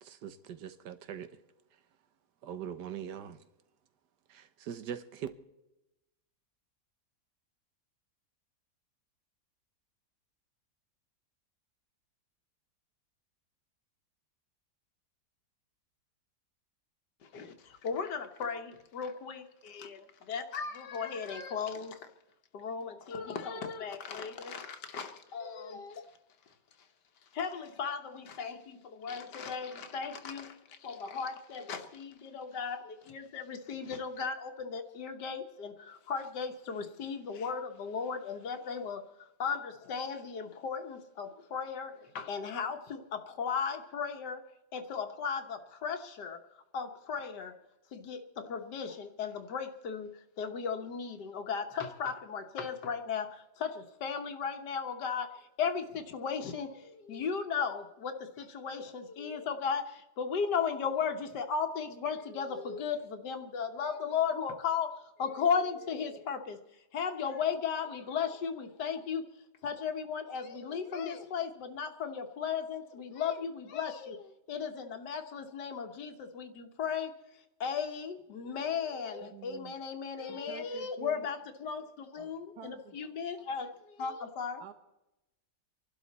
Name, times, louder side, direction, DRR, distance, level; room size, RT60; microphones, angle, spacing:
voice 1, 0.0-1.4 2.4-3.5 4.3-5.3, right 9 dB, 85° right, 1.6 m, -42 dB
voice 2, 17.3-22.0 22.5-26.0 27.3-39.0 39.4-44.4 44.7-46.4 46.7-47.5 47.9-55.3 55.6-64.9 65.2-66.6 66.9-69.2 69.6-77.1 77.6-84.6, left 6 dB, 85° left, 1.7 m, -36 dB
voice 3, 79.2-79.7 80.3-81.3 82.2-83.0 84.6-84.7, right 10 dB, 70° right, 1.5 m, -49 dB
25.5 x 12.0 x 4.1 m
omnidirectional pair, 1.8 m